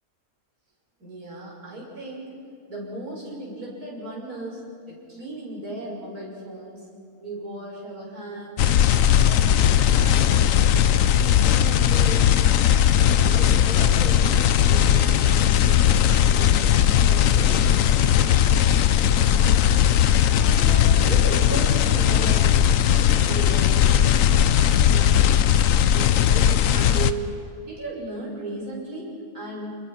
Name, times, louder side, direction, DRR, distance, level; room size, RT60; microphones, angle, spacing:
voice 1, 1.0-2.3 2.7-4.6 4.9-6.9 7.2-8.6 9.2-11.2 11.4-12.3 13.0-14.3 14.6-19.9 20.3-24.3 24.6-25.4 25.9-27.3 27.6-29.7, right 2 dB, 75° right, -5 dB, 7.1 m, -36 dB
sound 1, 8.6-27.1, left 10 dB, 65° left, 1.1 m, -18 dB
30.0 x 21.5 x 5.9 m, 2.3 s
omnidirectional pair, 1.6 m